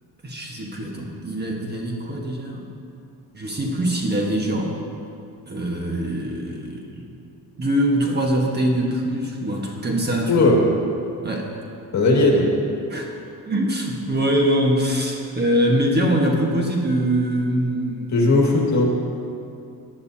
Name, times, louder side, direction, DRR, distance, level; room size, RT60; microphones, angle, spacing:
voice 1, 0.2-2.7 3.3-4.8 5.5-7.1 7.6-10.5 11.2-11.5 12.9-13.1 13.5-18.3, right 1 dB, 25° right, 0 dB, 1.4 m, -23 dB
voice 2, 10.3-10.6 11.9-12.5 18.1-18.9, left 2 dB, 45° left, -1 dB, 2.1 m, -17 dB
16.0 x 10.5 x 2.8 m, 2.5 s
cardioid pair, 115°, 37 cm